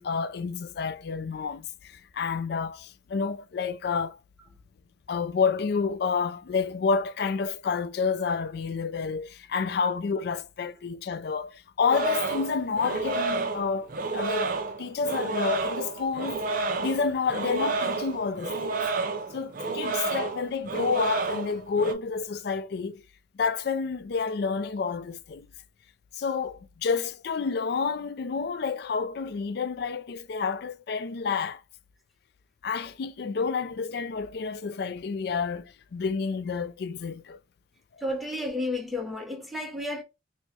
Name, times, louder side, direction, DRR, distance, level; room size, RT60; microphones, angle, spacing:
voice 1, 0.0-4.2 5.1-18.8 19.3-23.0 23.3-25.5 26.1-31.6 32.6-37.4, left 5 dB, 55° left, 0.3 m, -29 dB
sound 1, 11.9-21.9, right 3 dB, 45° right, 0.4 m, -30 dB
voice 2, 38.0-40.0, left 1 dB, ahead, 0.7 m, -32 dB
4.4 x 2.1 x 2.7 m
head